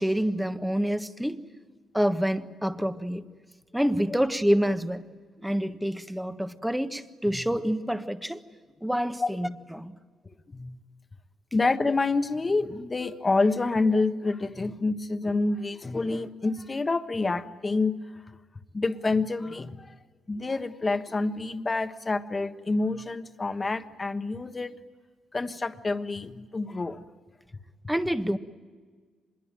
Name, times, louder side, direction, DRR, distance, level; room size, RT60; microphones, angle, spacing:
voice 1, 0.0-1.4 1.9-3.2 3.7-5.0 5.4-8.4 8.8-10.0 27.9-28.4, equal, 5° right, 1.3 m, -27 dB
voice 2, 11.5-17.9 18.7-19.9 20.3-24.8 25.3-27.0, left 3 dB, 25° left, 1.3 m, -27 dB
25.5 x 22.0 x 9.0 m
cardioid pair, 90°, 0 cm